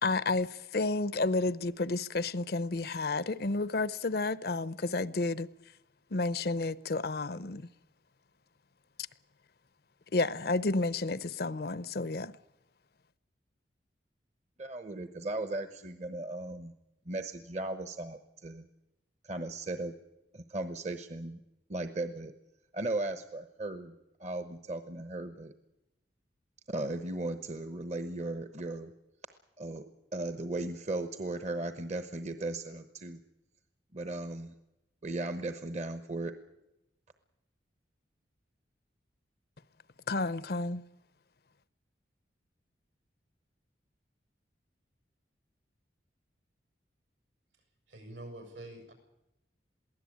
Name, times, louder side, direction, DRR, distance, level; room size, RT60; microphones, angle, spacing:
voice 1, 0.0-5.5 6.1-7.6 10.1-12.3 40.1-40.8, left 3 dB, 55° left, 0.7 m, -31 dB
voice 2, 14.6-16.7 17.1-18.6 19.2-19.9 20.3-21.4 21.7-22.3 22.7-23.9 24.2-25.5 26.7-28.9 29.6-29.8 30.1-33.2 33.9-34.5 35.0-36.3, right 2 dB, 40° right, 1.0 m, -36 dB
voice 3, 47.9-48.9, right 1 dB, 80° right, 6.7 m, -46 dB
22.5 x 16.0 x 8.6 m
head